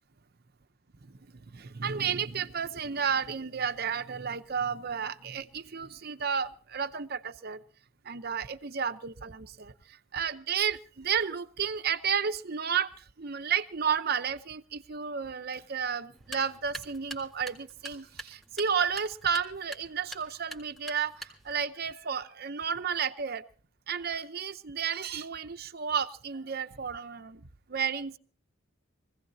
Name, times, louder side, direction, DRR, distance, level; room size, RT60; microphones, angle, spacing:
voice 1, 1.1-7.6 8.0-23.4 23.9-27.4 27.7-28.2, right 7 dB, 50° right, 0.7 m, -32 dB
sound 1, 16.1-21.6, right 2 dB, ahead, 2.1 m, -45 dB
24.0 x 16.5 x 2.8 m
head